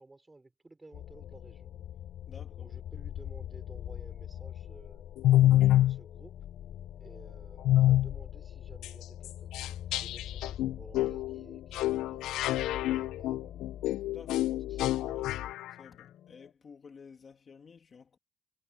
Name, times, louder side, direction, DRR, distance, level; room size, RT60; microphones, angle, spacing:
voice 1, 0.0-1.7 2.3-5.1 5.5-6.4 7.0-13.6 14.5-15.4, right 2 dB, 10° right, 4.4 m, -55 dB
sound 1, 0.9-16.5, left 11 dB, 55° left, 3.6 m, -44 dB
voice 2, 2.3-2.7 14.1-15.2 15.7-18.2, left 5 dB, 30° left, 2.3 m, -53 dB
sound 2, 5.2-6.0 7.6-8.1 8.8-8.9 9.2-9.3 9.5-15.7, left 14 dB, 75° left, 0.3 m, -26 dB
cardioid pair, 165°, 0 cm